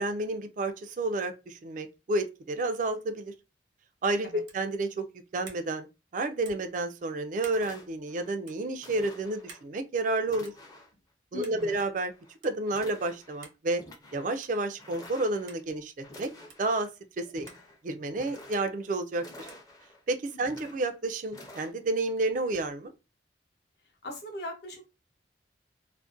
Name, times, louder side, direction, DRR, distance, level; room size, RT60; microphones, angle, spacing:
voice 1, 0.0-3.3 4.0-5.1 5.3-5.9 6.1-10.5 11.3-12.1 12.4-13.8 14.1-16.3 16.6-16.9 17.2-17.5 17.8-19.5 20.1-22.9, right 2 dB, 45° right, 0.3 m, -30 dB
sound 1, 4.4-4.7 5.4-5.7 6.4-6.7 7.4-7.6 8.4-8.6 9.5-9.7 10.4-10.7 11.4-11.6 12.4-12.5 13.4-13.6 14.4-14.6 15.5-15.6 16.5-16.6 17.5-17.6 18.5-18.6 19.5-19.7, right 5 dB, 80° right, 0.7 m, -50 dB
sound 2, 7.0-7.1 7.5-8.3 8.8-9.6 10.2-11.0 11.6-12.3 12.7-13.4 13.7-14.3 14.8-15.6 16.0-16.8 17.2-17.8 18.1-18.8 19.2-20.0 20.4-21.0 21.3-21.7, left 1 dB, 20° left, 0.5 m, -50 dB
voice 2, 11.3-11.8 20.3-20.5 24.0-24.8, left 1 dB, 60° left, 0.7 m, -39 dB
2.5 x 2.1 x 2.4 m
head